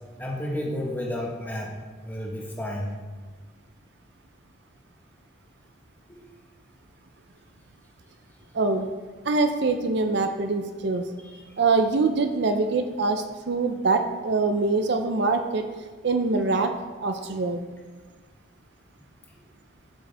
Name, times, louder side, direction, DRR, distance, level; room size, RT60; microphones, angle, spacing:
voice 1, 0.2-1.7 2.0-2.9 6.1-6.3 11.2-11.4, left 1 dB, 10° left, -2 dB, 1.3 m, -32 dB
voice 2, 8.5-8.9 9.2-11.1 11.6-15.7 16.0-16.7 17.0-17.6, right 3 dB, 60° right, 7 dB, 0.5 m, -24 dB
11.5 x 6.4 x 3.4 m, 1.4 s
head